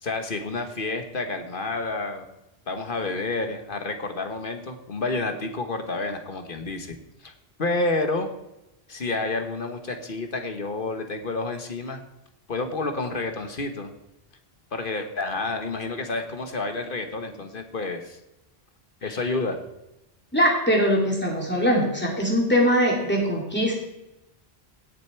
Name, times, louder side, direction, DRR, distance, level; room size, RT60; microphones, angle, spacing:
voice 1, 0.0-2.3 2.7-7.0 7.2-7.3 7.6-8.3 8.9-12.0 12.5-13.9 14.7-18.2 19.0-19.6, left 3 dB, 55° left, 6 dB, 1.3 m, -29 dB
voice 2, 20.3-23.7, equal, 10° left, -2 dB, 2.9 m, -22 dB
17.0 x 6.8 x 4.5 m, 0.92 s
omnidirectional pair, 1.1 m